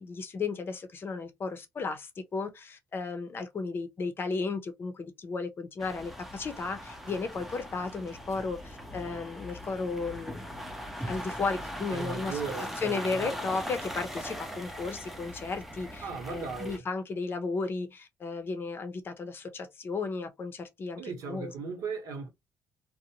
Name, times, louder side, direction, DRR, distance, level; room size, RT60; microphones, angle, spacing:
voice 1, 0.0-10.4 11.0-12.4 12.8-21.5, left 4 dB, 35° left, 0.6 m, -34 dB
sound 1, 5.8-16.8, equal, 5° right, 0.6 m, -40 dB
voice 2, 11.9-13.3 16.0-16.8 21.0-22.3, right 5 dB, 65° right, 1.0 m, -37 dB
2.5 x 2.1 x 2.8 m
cardioid pair, 105°, 6 cm